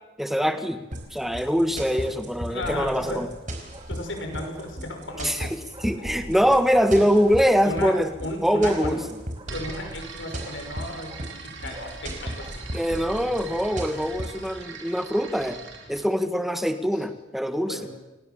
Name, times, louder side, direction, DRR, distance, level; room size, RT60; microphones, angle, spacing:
voice 1, 0.2-0.8 1.1-3.3 5.2-8.1 8.4-9.0 12.7-15.6 15.9-17.8, equal, ahead, 8 dB, 1.6 m, -23 dB
sound 1, 0.9-14.2, right 1 dB, 25° right, 2.7 m, -48 dB
sound 2, 0.9-14.5, right 1 dB, 40° right, 4.9 m, -36 dB
voice 2, 2.5-3.2 3.9-5.5 6.3-6.4 6.9-7.1 7.6-9.0 9.5-11.1 11.4-12.6 17.7-17.9, left 1 dB, 80° left, 4 dB, 6.1 m, -34 dB
sound 3, 9.4-16.1, right 5 dB, 75° right, 4.2 m, -42 dB
29.5 x 19.0 x 7.1 m, 1.1 s
head